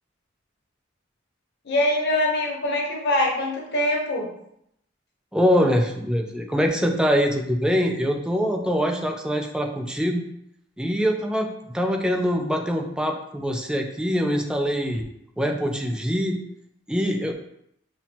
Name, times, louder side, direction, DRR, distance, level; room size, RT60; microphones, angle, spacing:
voice 1, 1.6-4.3, left 1 dB, 60° left, 0 dB, 0.7 m, -23 dB
voice 2, 5.3-10.2 10.8-15.0 15.4-16.4 16.9-17.3, equal, 5° right, 3 dB, 0.3 m, -23 dB
5.9 x 2.0 x 2.8 m, 0.76 s
head